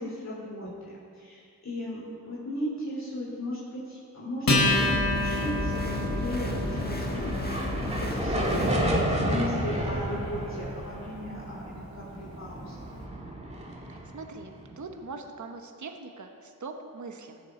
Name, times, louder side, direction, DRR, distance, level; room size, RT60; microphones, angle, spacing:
voice 1, 0.0-7.4 7.8-12.9, left 1 dB, 45° left, -6 dB, 3.2 m, -36 dB
Acoustic guitar, 4.5-11.3, left 2 dB, 60° left, 3.2 m, -30 dB
sound 1, 4.6-9.0, equal, 25° left, 1.6 m, -32 dB
sound 2, 6.4-14.8, right 1 dB, 15° right, 2.2 m, -32 dB
voice 2, 13.9-17.4, right 3 dB, 50° right, 5 dB, 1.1 m, -42 dB
16.0 x 6.9 x 4.4 m, 2.3 s
cardioid pair, 55°, 37 cm